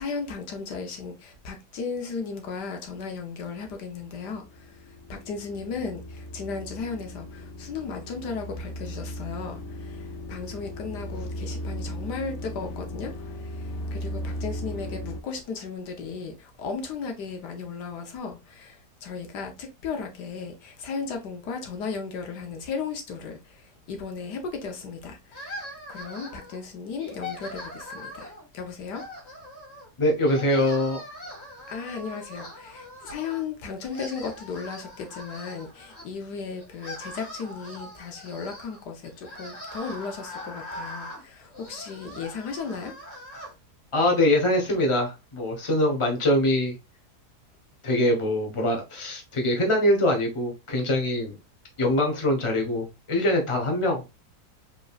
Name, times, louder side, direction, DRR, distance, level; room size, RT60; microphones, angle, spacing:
voice 1, 0.0-4.8 5.1-25.5 25.9-29.0 31.7-42.9, left 5 dB, 85° left, 1.6 m, -35 dB
sound 1, 4.0-15.2, equal, 60° left, 0.8 m, -37 dB
sound 2, 25.3-26.6 27.0-28.4 28.9-29.9 30.2-33.5 33.8-36.0 36.6-43.5, left 1 dB, 40° left, 2.1 m, -41 dB
voice 2, 30.0-31.0 43.9-46.7 47.8-51.3 51.8-54.0, left 1 dB, 20° left, 1.1 m, -23 dB
5.0 x 3.8 x 2.4 m
omnidirectional pair, 1.7 m